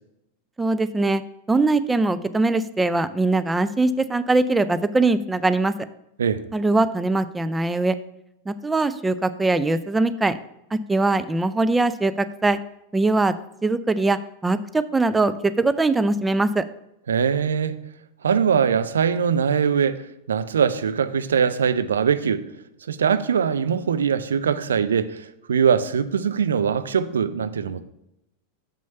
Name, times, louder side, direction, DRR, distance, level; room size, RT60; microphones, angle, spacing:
voice 1, 0.6-1.2 1.5-5.7 6.5-7.9 8.5-10.4 10.7-12.6 12.9-13.3 13.6-16.6, right 2 dB, 10° right, 0.4 m, -21 dB
voice 2, 17.1-17.7 18.2-20.0 20.3-22.4 22.9-25.2 25.5-27.8, right 7 dB, 65° right, 0.5 m, -21 dB
6.9 x 6.2 x 5.3 m
figure-of-eight pair, 90°, 0 cm